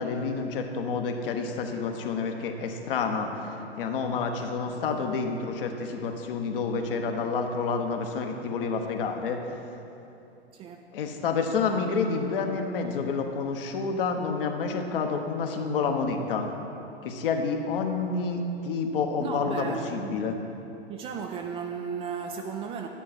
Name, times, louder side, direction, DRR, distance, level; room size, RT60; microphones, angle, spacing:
voice 1, 0.0-3.5 3.8-9.4 10.9-16.5 17.0-20.4, left 5 dB, 55° left, 4 dB, 1.2 m, -29 dB
voice 2, 10.5-10.8 19.2-20.3 20.9-22.9, right 6 dB, 20° right, 4 dB, 0.3 m, -35 dB
11.0 x 9.7 x 4.3 m, 2.9 s
figure-of-eight pair, 95°, 32 cm